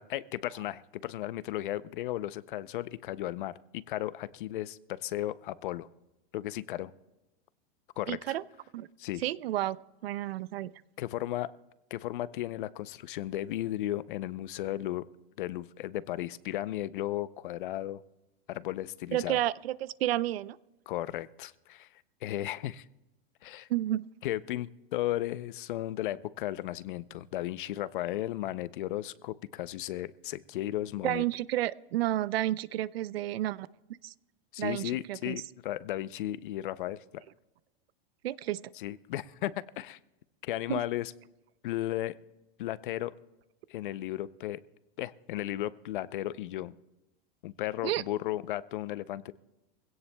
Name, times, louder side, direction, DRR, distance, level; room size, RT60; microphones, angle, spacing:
voice 1, 0.0-5.9 6.3-6.9 8.0-8.4 9.0-9.2 11.0-11.5 11.9-15.0 15.4-18.0 18.5-19.4 20.9-21.9 22.2-22.9 23.4-23.7 24.2-31.2 34.5-37.2 38.8-40.0 40.4-41.1 41.6-42.1 42.6-43.1 43.7-44.6 45.0-46.7 47.4-49.3, left 14 dB, 55° left, 17 dB, 0.5 m, -35 dB
voice 2, 8.1-8.4 8.7-8.9 9.2-9.8 10.0-10.7 19.1-20.6 23.7-24.1 31.0-33.7 34.0-34.1 34.6-35.4 38.2-38.6 40.7-40.8 47.8-48.0, right 14 dB, 80° right, 19 dB, 0.6 m, -31 dB
23.5 x 17.0 x 2.2 m, 1.0 s
supercardioid pair, 170°, 30 cm